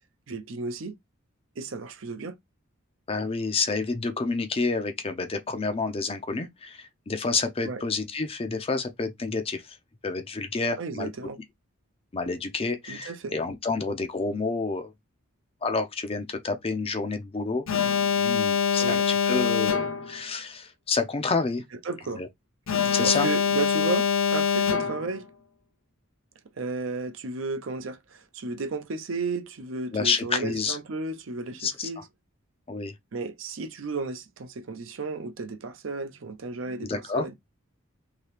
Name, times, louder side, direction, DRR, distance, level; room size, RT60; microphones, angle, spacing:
voice 1, 0.3-1.0 1.6-2.3 7.7-7.8 10.8-11.4 12.9-13.3 18.8-19.1 21.8-22.2 23.0-25.2 26.6-32.1 33.1-37.3, right 3 dB, 65° right, 0.6 m, -33 dB
voice 2, 3.1-9.8 10.0-11.1 12.1-14.9 15.6-17.6 18.1-21.6 22.2-22.3 22.9-23.3 29.9-30.8 31.6-31.9 32.7-32.9 36.8-37.3, left 4 dB, 30° left, 0.5 m, -29 dB
Alarm, 17.7-20.2 22.7-25.2, left 6 dB, 70° left, 0.6 m, -24 dB
2.8 x 2.8 x 3.2 m
head